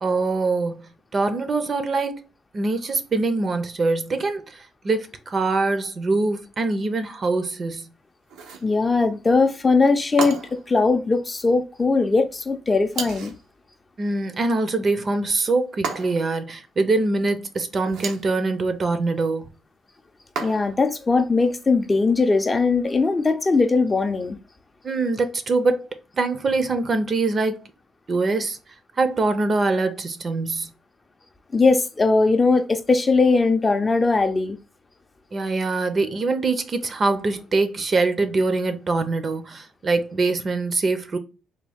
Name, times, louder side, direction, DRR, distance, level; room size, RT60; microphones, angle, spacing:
voice 1, 0.0-2.2 2.5-4.6 4.8-7.9 14.0-19.5 24.8-25.9 26.2-27.6 28.1-28.6 29.0-30.7 35.3-41.2, right 3 dB, 40° right, 0.5 m, -23 dB
sound 1, 8.3-8.7 10.2-10.7 12.9-13.4 15.8-16.4 17.8-18.3 20.4-20.9, right 5 dB, 90° right, 0.7 m, -31 dB
voice 2, 8.6-10.4 10.7-13.3 20.4-24.4 31.5-34.6, left 3 dB, 25° left, 0.5 m, -20 dB
3.5 x 2.2 x 3.4 m
cardioid pair, 90°, 0 cm